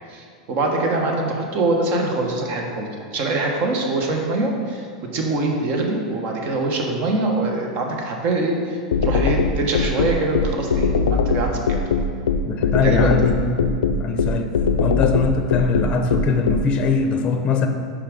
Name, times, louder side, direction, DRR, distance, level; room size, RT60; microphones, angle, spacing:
voice 1, 0.1-4.9 5.1-11.8 12.8-13.2, right 2 dB, 50° right, 1 dB, 1.2 m, -23 dB
sound 1, 8.9-16.6, left 5 dB, 90° left, 0.3 m, -20 dB
voice 2, 12.5-14.5 14.8-17.7, left 4 dB, 30° left, 6 dB, 0.6 m, -22 dB
5.6 x 4.9 x 5.0 m, 2.2 s
hypercardioid pair, 110°, 3 cm